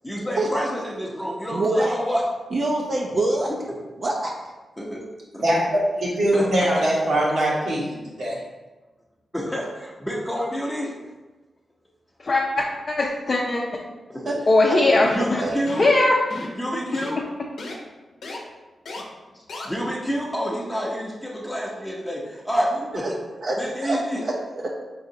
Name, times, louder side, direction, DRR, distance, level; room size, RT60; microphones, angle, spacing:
voice 1, 0.0-2.2 3.3-3.6 4.8-5.1 5.3-5.4 6.3-6.8 9.3-10.9 14.1-14.3 15.1-15.9 16.6-17.2 19.6-23.2 23.6-24.2, equal, 10° left, -5 dB, 0.7 m, -28 dB
voice 2, 1.5-2.0 2.5-3.5 4.0-4.3 14.3-14.4 15.4-15.6 23.0-23.1 23.4-24.7, right 2 dB, 55° right, -1 dB, 0.5 m, -25 dB
voice 3, 5.4-8.4, right 1 dB, 85° right, -7 dB, 1.4 m, -22 dB
voice 4, 12.2-13.8 14.5-15.4 15.8-16.2, left 2 dB, 45° left, -2 dB, 0.5 m, -20 dB
sound 1, 15.0-15.3 15.7-15.9 16.3-16.6 16.9-17.1 17.6-17.7 18.2-18.4 18.9-19.0 19.5-19.7, left 2 dB, 80° left, 0.7 m, -34 dB
4.1 x 3.8 x 2.7 m, 1.2 s
cardioid pair, 70°, 0 cm